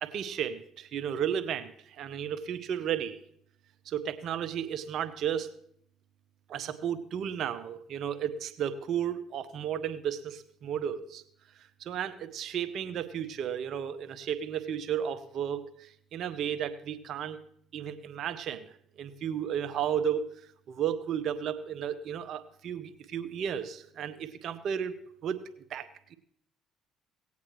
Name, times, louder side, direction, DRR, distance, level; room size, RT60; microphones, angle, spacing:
voice 1, 0.0-3.2 3.8-5.5 6.5-11.2 11.5-17.4 17.7-20.3 20.7-25.0 25.2-25.4 25.7-26.1, right 9 dB, 65° right, 10 dB, 0.8 m, -33 dB
18.5 x 8.4 x 3.1 m, 0.66 s
hypercardioid pair, 60°, 0 cm